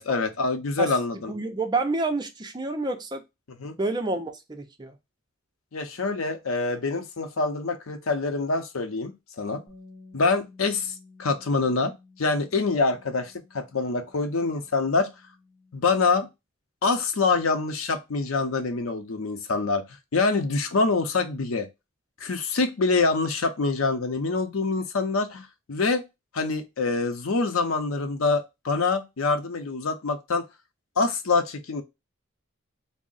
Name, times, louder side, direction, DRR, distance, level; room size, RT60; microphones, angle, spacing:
voice 1, 0.0-1.3 3.6-3.7 5.7-9.6 10.1-11.9 12.2-15.1 15.7-16.3 16.8-19.8 20.1-21.7 22.2-26.0 26.3-30.4 31.0-31.8, left 3 dB, 80° left, 0.6 m, -25 dB
voice 2, 0.8-3.2 3.8-4.9, right 2 dB, 20° right, 0.5 m, -29 dB
Bass guitar, 9.7-15.9, left 3 dB, 10° left, 1.3 m, -53 dB
3.6 x 2.0 x 3.8 m
head